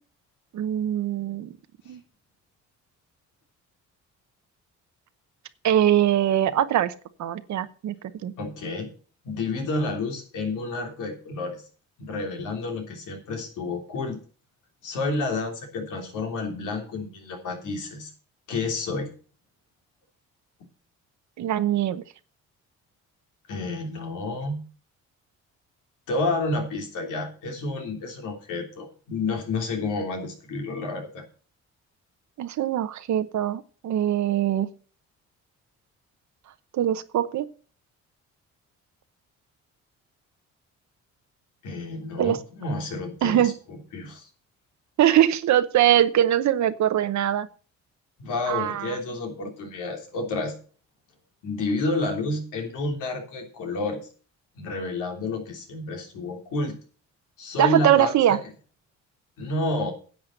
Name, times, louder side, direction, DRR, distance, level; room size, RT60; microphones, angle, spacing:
voice 1, 0.5-1.6 1.9-2.0 5.6-6.9 7.2-7.9 8.2-8.3 21.4-22.0 32.4-34.7 36.7-37.5 42.2-42.4 43.2-43.5 45.0-47.5 48.5-49.0 57.6-58.4, right 11 dB, 70° right, 11 dB, 0.9 m, -22 dB
voice 2, 8.4-8.9 9.2-11.6 12.0-14.2 14.8-18.1 18.5-19.1 23.5-24.6 26.1-31.2 41.6-44.3 48.2-50.6 51.4-54.0 54.5-56.7 57.4-58.4 59.4-59.9, left 2 dB, 90° left, 2 dB, 3.3 m, -30 dB
10.5 x 7.5 x 6.5 m, 0.39 s
cardioid pair, 90°, 30 cm